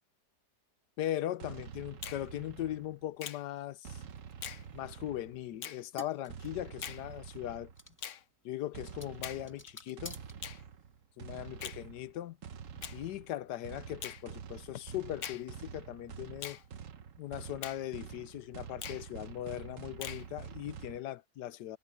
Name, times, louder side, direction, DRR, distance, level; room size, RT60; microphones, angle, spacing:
voice 1, 1.0-4.0 4.7-7.7 8.4-10.2 11.2-12.4 12.9-16.6 17.2-21.8, left 13 dB, 85° left, 1.3 m, -39 dB
sound 1, 1.4-3.2 3.8-5.6 6.3-7.9 8.7-21.0, right 7 dB, 55° right, 1.3 m, -47 dB
Finger snapping, 2.0-2.2 3.2-3.4 4.4-4.6 5.6-5.8 6.8-7.0 8.0-8.2 9.2-9.4 10.4-10.6 11.6-11.8 12.8-13.0 14.0-14.2 15.2-15.5 16.4-16.6 17.6-17.8 18.8-19.0 20.0-20.3, left 9 dB, 55° left, 1.0 m, -42 dB
sound 2, 4.1-11.0, left 1 dB, 10° left, 2.0 m, -54 dB
omnidirectional pair, 1.7 m